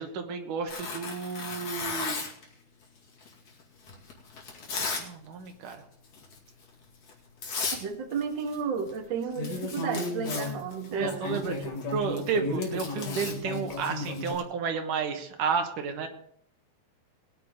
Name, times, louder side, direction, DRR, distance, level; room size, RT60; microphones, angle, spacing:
voice 1, 0.0-2.2 5.0-5.8 10.9-11.6 11.9-16.1, right 6 dB, 80° right, 5 dB, 2.9 m, -32 dB
Tearing, 0.7-2.4 3.2-5.1 5.4-5.7 6.1-6.4 7.1-7.2 7.4-7.8 8.1-9.0 9.2-14.4, left 4 dB, 55° left, 3.3 m, -36 dB
sound 1, 4.5-4.7 9.4-14.3, left 2 dB, 85° left, 4.1 m, -34 dB
voice 2, 7.8-11.3, right 6 dB, 45° right, 3 dB, 1.8 m, -32 dB
20.5 x 9.9 x 3.7 m, 0.64 s
omnidirectional pair, 3.6 m